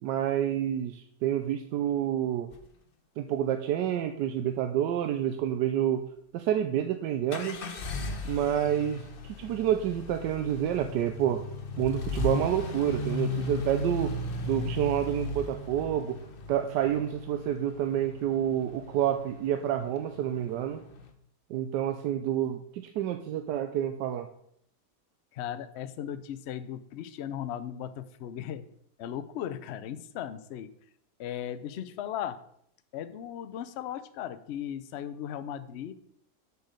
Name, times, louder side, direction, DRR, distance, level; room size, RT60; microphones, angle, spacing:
voice 1, 0.0-2.5 3.2-6.0 6.3-7.6 8.2-11.4 11.8-14.1 14.4-16.2 16.5-20.8 21.5-24.3, right 10 dB, 85° right, 7 dB, 1.2 m, -28 dB
sound 1, 2.5-2.7 7.3-21.1, left 3 dB, 45° left, 0.7 m, -37 dB
voice 2, 25.3-28.7 29.0-30.7 31.2-32.4 32.9-35.9, left 10 dB, 85° left, 12 dB, 0.5 m, -37 dB
6.8 x 4.7 x 6.4 m, 0.69 s
omnidirectional pair, 1.8 m